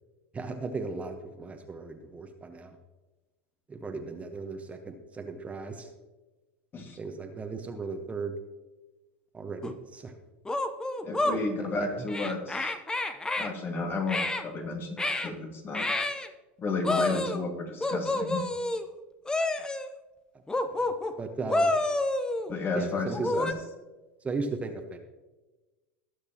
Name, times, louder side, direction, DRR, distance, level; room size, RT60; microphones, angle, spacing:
voice 1, 0.3-2.8 3.7-5.9 7.0-8.4 9.3-10.1 11.6-11.9 20.7-20.9 21.2-21.7 22.7-23.4 24.2-25.0, right 4 dB, 20° right, 5 dB, 1.1 m, -36 dB
sound 1, 9.6-9.7 10.5-11.4 12.1-13.5 14.1-14.4 15.0-15.3 15.7-16.3 16.8-17.4 17.8-18.8 19.3-19.9 20.5-21.1 21.5-22.5 23.1-23.5, left 2 dB, 10° left, 0.8 m, -29 dB
voice 2, 11.0-12.7 13.4-15.9 16.6-18.5 22.5-23.5, left 3 dB, 35° left, 3 dB, 2.0 m, -32 dB
19.0 x 6.6 x 3.0 m, 1.1 s
hypercardioid pair, 85°, 6 cm